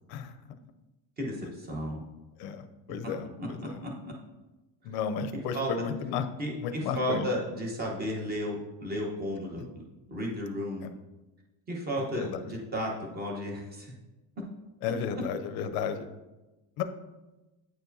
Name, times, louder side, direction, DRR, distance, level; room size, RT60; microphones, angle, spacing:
voice 1, 1.2-2.0 3.0-3.1 3.4-3.5 3.8-4.1 5.3-5.7 6.4-9.8 10.1-10.8 11.7-13.9, equal, 20° right, -1 dB, 1.0 m, -33 dB
voice 2, 2.4-3.7 4.8-6.3 6.6-7.3 10.8-10.9 12.1-12.4 14.8-16.1 16.8-16.9, left 7 dB, 55° left, 9 dB, 0.6 m, -33 dB
9.2 x 4.6 x 2.7 m, 1.1 s
cardioid pair, 175°, 47 cm